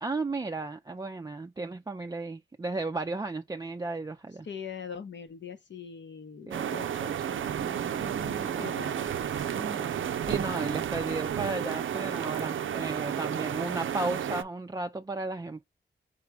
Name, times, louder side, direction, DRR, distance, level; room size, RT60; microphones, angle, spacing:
voice 1, 0.0-4.5 6.5-8.7 9.5-15.7, right 3 dB, 20° right, 0.4 m, -35 dB
voice 2, 4.4-7.1 8.5-9.1, left 7 dB, 65° left, 0.9 m, -42 dB
sound 1, 6.5-14.4, right 9 dB, 80° right, 0.5 m, -32 dB
5.0 x 2.2 x 4.6 m
cardioid pair, 70°, 20 cm